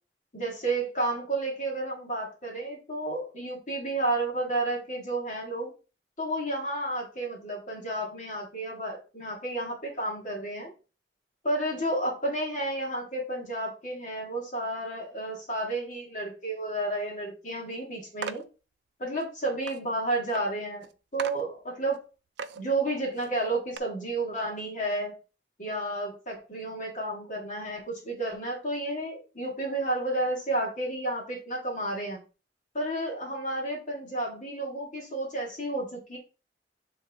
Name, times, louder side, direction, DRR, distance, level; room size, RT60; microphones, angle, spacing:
voice 1, 0.3-5.7 6.2-10.7 11.4-18.4 19.0-20.9 21.1-22.0 22.6-25.1 25.6-32.2 32.7-36.2, right 2 dB, 45° left, -2 dB, 2.0 m, -31 dB
sound 1, 18.2-18.5 19.2-19.3 19.7-19.8 20.3-20.4 20.8-20.9 21.2-21.4 21.9-22.0 22.4-22.6 23.2-23.3 23.7-23.8, right 5 dB, 65° right, 0.5 m, -37 dB
7.8 x 3.6 x 3.6 m, 0.33 s
head